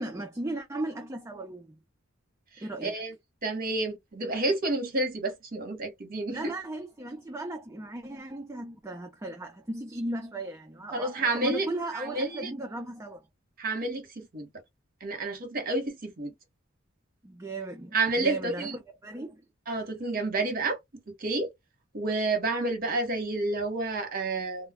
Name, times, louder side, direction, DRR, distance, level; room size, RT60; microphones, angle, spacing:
voice 1, 0.0-1.8 2.6-2.9 6.3-13.2 17.2-19.8, right 2 dB, 15° right, 0.4 m, -36 dB
voice 2, 2.6-3.1 3.4-6.5 10.9-11.7 11.9-12.5 13.6-14.5 15.0-16.3 17.9-18.7 19.7-20.8 21.1-21.5 21.9-24.7, right 2 dB, 45° right, 1.0 m, -30 dB
2.2 x 2.1 x 3.4 m
head